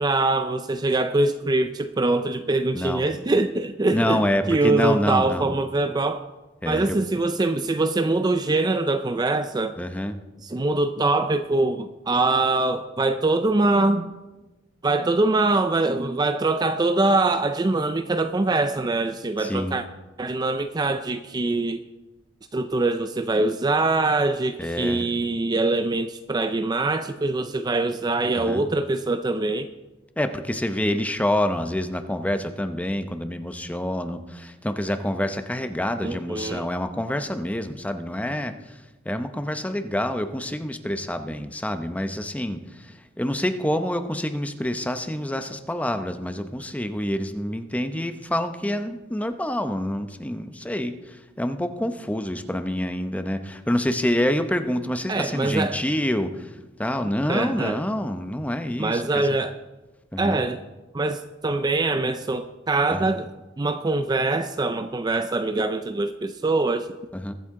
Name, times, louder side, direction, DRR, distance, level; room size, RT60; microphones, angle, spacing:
voice 1, 0.0-6.2 6.7-9.8 10.4-14.1 14.8-19.8 20.2-21.8 22.5-29.7 36.0-36.7 55.1-55.8 57.3-57.8 58.8-59.6 60.2-60.6 60.9-63.3 63.6-66.9, right 2 dB, 20° right, 10 dB, 0.4 m, -23 dB
voice 2, 2.7-3.1 3.9-5.5 6.6-7.0 9.8-10.2 19.4-19.8 24.6-25.1 28.4-28.7 30.2-59.4 60.1-60.4 62.9-63.1 67.1-67.3, left 1 dB, 10° left, 8 dB, 0.7 m, -27 dB
22.5 x 8.5 x 3.7 m, 1.1 s
head